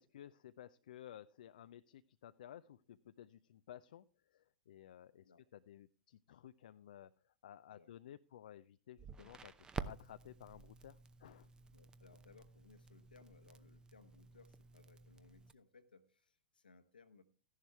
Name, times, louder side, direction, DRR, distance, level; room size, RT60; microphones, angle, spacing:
voice 1, 0.0-4.0 4.3-11.5, left 11 dB, 65° left, 12 dB, 0.4 m, -56 dB
Crackle, 9.0-15.5, right 5 dB, 15° right, 0.7 m, -51 dB
voice 2, 11.7-17.2, left 4 dB, 80° left, 9 dB, 1.3 m, -64 dB
14.0 x 11.0 x 3.4 m, 0.38 s
figure-of-eight pair, 95°, 5 cm